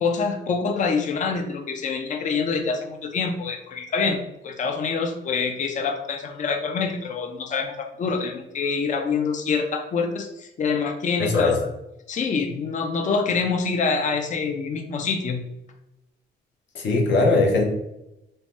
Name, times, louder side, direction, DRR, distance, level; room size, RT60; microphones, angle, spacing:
voice 1, 0.0-4.2 4.4-11.7 12.1-15.4, left 5 dB, 40° left, 4 dB, 0.4 m, -26 dB
voice 2, 11.2-11.6 16.7-17.6, left 3 dB, 65° left, 1 dB, 0.8 m, -20 dB
2.7 x 2.0 x 3.3 m, 0.90 s
cardioid pair, 90°, 20 cm